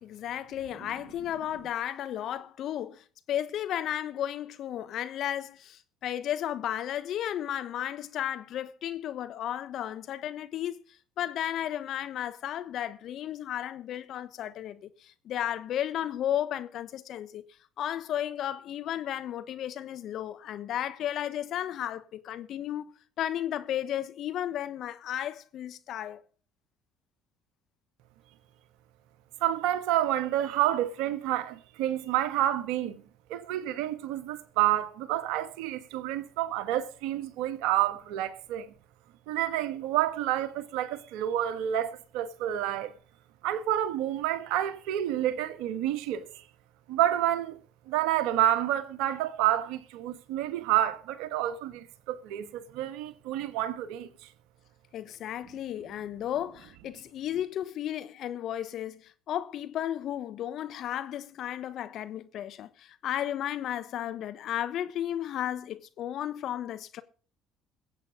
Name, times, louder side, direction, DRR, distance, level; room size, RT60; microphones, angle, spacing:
voice 1, 0.0-10.8 11.2-17.4 17.8-26.2 54.9-67.0, left 11 dB, 60° left, 1.2 m, -34 dB
voice 2, 29.4-33.0 33.3-38.7 39.3-42.9 43.4-46.4 46.9-47.6 47.9-54.1, right 12 dB, 70° right, 1.4 m, -29 dB
22.0 x 8.2 x 3.9 m
hypercardioid pair, 60°, 0 cm